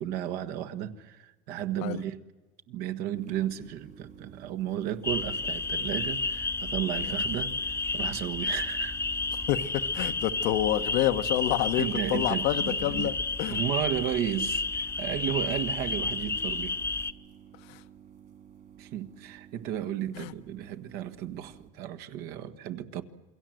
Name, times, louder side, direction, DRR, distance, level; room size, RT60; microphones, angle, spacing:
voice 1, 0.0-2.2 2.7-9.0 11.8-13.1 13.5-16.8 18.8-23.0, right 11 dB, 70° right, 1.6 m, -34 dB
sound 1, 3.2-21.7, right 9 dB, 55° right, 3.2 m, -52 dB
sound 2, 5.0-17.1, left 3 dB, 15° left, 1.1 m, -31 dB
voice 2, 9.5-13.6 17.7-17.8 20.1-20.3, left 14 dB, 75° left, 1.3 m, -28 dB
27.5 x 22.0 x 7.8 m
supercardioid pair, 100°, 17 cm